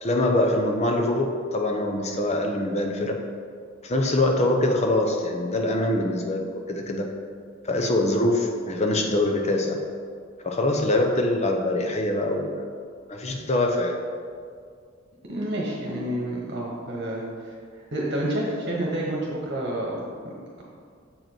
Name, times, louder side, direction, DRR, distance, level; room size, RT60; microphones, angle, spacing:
voice 1, 0.0-3.1 3.8-7.1 7.6-9.8 10.4-12.6 13.1-14.0, left 1 dB, 35° left, 2 dB, 0.7 m, -24 dB
voice 2, 15.3-20.3, right 1 dB, 55° right, -3 dB, 1.3 m, -29 dB
7.3 x 5.2 x 4.5 m, 2.1 s
head